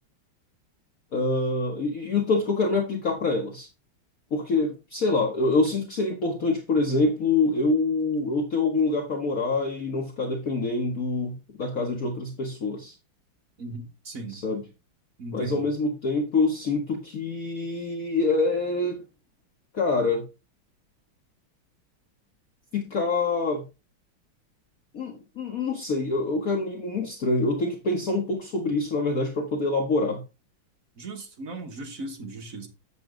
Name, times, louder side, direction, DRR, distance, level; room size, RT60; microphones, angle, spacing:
voice 1, 1.1-3.7 4.3-12.9 14.3-14.7 15.3-19.0 19.7-20.2 22.7-23.6 24.9-30.2, left 3 dB, 50° left, 1.4 m, -26 dB
voice 2, 13.6-14.4 15.2-15.7 31.0-32.7, right 2 dB, 45° right, 1.6 m, -38 dB
8.1 x 7.0 x 3.7 m
omnidirectional pair, 2.2 m